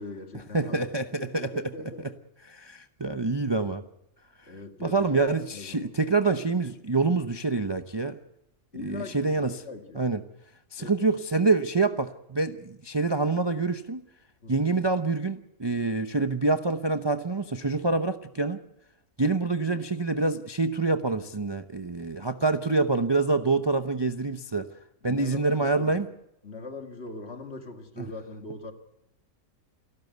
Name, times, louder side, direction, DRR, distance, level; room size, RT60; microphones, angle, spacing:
voice 1, 0.0-0.8 1.2-2.2 4.5-6.0 8.7-10.0 10.8-10.9 14.4-14.7 25.0-26.1 26.4-28.7, left 3 dB, 45° left, 2.3 m, -41 dB
voice 2, 0.5-1.6 2.5-3.8 4.8-8.2 8.8-9.5 9.9-10.2 10.7-14.0 14.5-18.6 19.2-24.7 25.0-26.1 28.0-28.1, right 3 dB, 25° right, 0.7 m, -26 dB
28.0 x 12.5 x 8.0 m
omnidirectional pair, 1.5 m